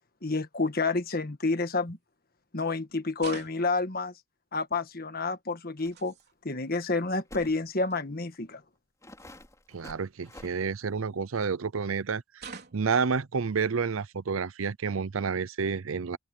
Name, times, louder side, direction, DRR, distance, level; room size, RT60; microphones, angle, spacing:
voice 1, 0.2-2.0 2.5-4.1 4.5-6.1 6.5-8.6, left 3 dB, 45° left, 1.6 m, -29 dB
sound 1, 1.5-1.7 3.2-3.8 5.6-6.3 7.5-7.6 7.8-8.0 9.2-9.3 10.3-11.3 12.4-13.0, right 5 dB, 50° right, 4.0 m, -46 dB
sound 2, 5.8-5.9 6.2-6.3 7.3-7.6 8.3-8.4 9.0-10.5, left 1 dB, 15° left, 4.6 m, -48 dB
voice 2, 9.7-16.2, right 5 dB, 85° right, 0.6 m, -30 dB
open air
head